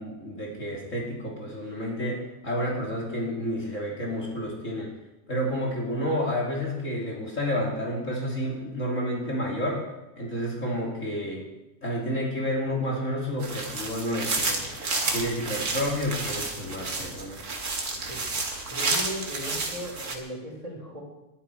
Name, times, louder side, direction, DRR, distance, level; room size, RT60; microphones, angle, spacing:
voice 1, 0.0-4.9 5.3-9.8 10.2-11.5 11.8-14.7 15.0-17.4, equal, 45° left, -3 dB, 3.3 m, -30 dB
sound 1, 13.4-20.2, right 3 dB, 60° right, 2.5 m, -30 dB
voice 2, 18.7-21.0, equal, 20° right, -2 dB, 4.8 m, -37 dB
21.5 x 12.5 x 4.7 m, 0.99 s
omnidirectional pair, 1.8 m